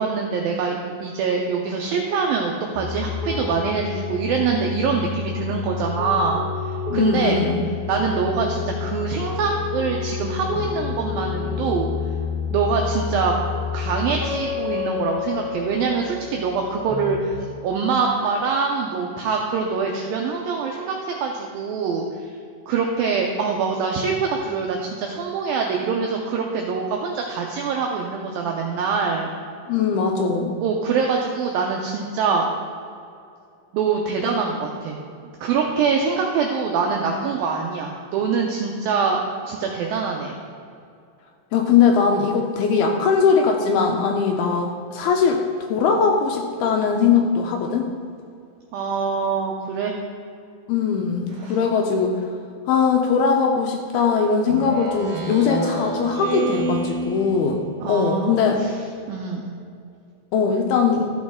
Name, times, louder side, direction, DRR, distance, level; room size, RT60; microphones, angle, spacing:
voice 1, 0.0-6.4 6.9-7.4 7.9-11.9 12.5-13.3 13.7-22.3 22.7-29.3 30.6-32.5 33.7-35.0 35.2-40.4 48.7-50.0 51.4-51.6 57.8-58.7 59.1-59.6, right 5 dB, 85° right, 1 dB, 2.0 m, -24 dB
sound 1, 2.7-17.1, left 6 dB, 20° left, 1.3 m, -29 dB
voice 2, 6.9-7.6 29.7-30.6 41.5-47.9 50.7-52.2 52.7-58.6 60.3-61.1, left 5 dB, 80° left, 3 dB, 2.3 m, -20 dB
Speech synthesizer, 54.5-58.0, right 2 dB, 65° right, 2.1 m, -28 dB
13.5 x 6.2 x 3.7 m, 2.4 s
omnidirectional pair, 4.9 m